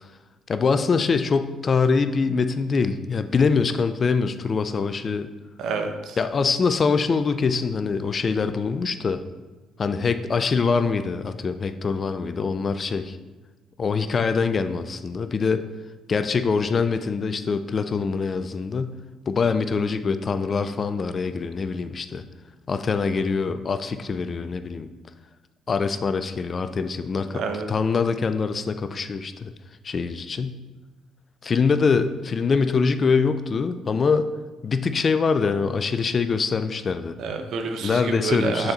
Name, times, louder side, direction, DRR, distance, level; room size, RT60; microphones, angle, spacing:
voice 1, 0.5-5.3 6.2-9.2 9.8-13.2 13.8-15.6 16.1-19.0 19.3-22.2 22.7-24.9 25.7-27.4 27.7-29.5 29.8-30.6 31.4-34.3 34.6-37.2 37.8-38.7, left 5 dB, 45° left, 10 dB, 0.4 m, -24 dB
voice 2, 5.6-6.2 27.3-27.7 37.2-38.7, right 4 dB, 70° right, 5 dB, 0.7 m, -28 dB
6.5 x 4.4 x 4.0 m, 1.2 s
supercardioid pair, 65°, 0 cm